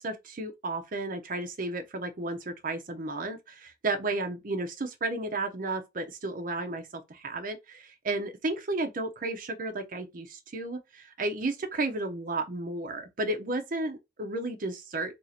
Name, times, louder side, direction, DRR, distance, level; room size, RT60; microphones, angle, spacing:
voice 1, 0.0-15.1, right 2 dB, 45° right, 0.6 m, -33 dB
2.7 x 2.4 x 4.1 m
head